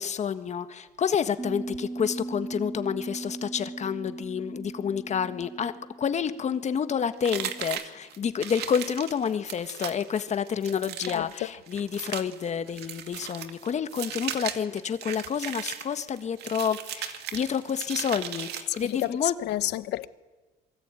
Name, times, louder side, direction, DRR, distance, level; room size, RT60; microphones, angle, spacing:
voice 1, 0.0-5.7 6.0-19.3, left 7 dB, 45° left, 1.6 m, -29 dB
Bass guitar, 1.4-7.6, right 2 dB, 20° right, 3.3 m, -39 dB
sound 1, 7.2-19.1, right 10 dB, 75° right, 2.1 m, -37 dB
voice 2, 18.8-20.1, left 16 dB, 80° left, 1.1 m, -30 dB
27.0 x 23.0 x 9.1 m
cardioid pair, 110°, 17 cm